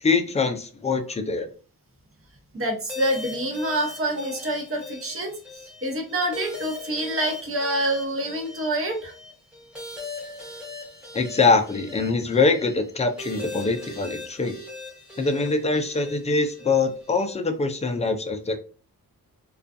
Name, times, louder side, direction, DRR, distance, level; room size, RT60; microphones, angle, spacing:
voice 1, 0.0-1.5 11.1-14.6 15.2-18.6, left 4 dB, 20° left, 0.4 m, -23 dB
voice 2, 2.5-5.3 5.8-9.1, right 1 dB, 35° right, 0.9 m, -27 dB
sound 1, 2.9-17.4, left 3 dB, 5° right, 1.0 m, -40 dB
2.4 x 2.3 x 2.5 m
wide cardioid pair, 110°, 36 cm